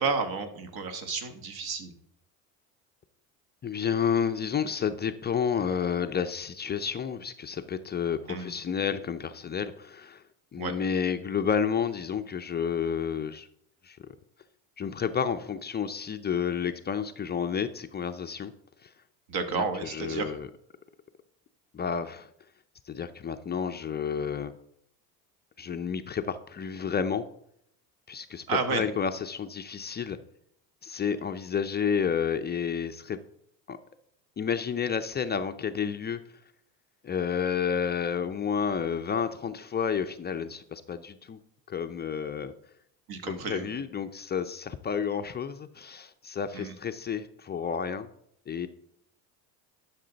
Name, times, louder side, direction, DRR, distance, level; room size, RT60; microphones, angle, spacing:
voice 1, 0.0-1.9 8.3-8.5 10.6-10.7 19.3-20.4 28.5-28.8 43.1-43.8 46.5-46.7, right 4 dB, 55° right, 7 dB, 1.6 m, -31 dB
voice 2, 3.6-10.2 10.5-13.5 13.8-14.0 14.8-18.5 18.8-18.9 19.5-20.5 21.7-22.3 22.9-24.5 25.6-27.2 28.1-30.2 30.8-33.2 33.7-33.8 34.4-36.2 37.0-41.4 41.7-42.5 43.3-48.1 48.5-48.7, left 7 dB, 25° left, 8 dB, 0.5 m, -30 dB
11.0 x 6.0 x 4.0 m, 0.71 s
supercardioid pair, 90°, 45 cm